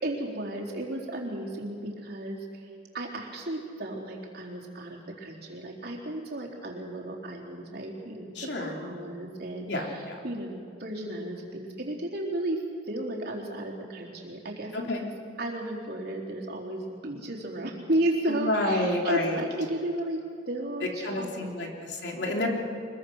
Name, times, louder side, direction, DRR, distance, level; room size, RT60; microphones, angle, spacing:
voice 1, 0.0-2.7 2.9-14.7 15.0-15.1 15.4-21.7, right 1 dB, 60° right, -2 dB, 3.9 m, -34 dB
voice 2, 8.3-8.7 9.7-10.2 14.7-15.0 18.3-19.4 21.0-22.5, left 1 dB, 70° left, 0 dB, 3.4 m, -29 dB
25.0 x 22.0 x 6.5 m, 2.3 s
head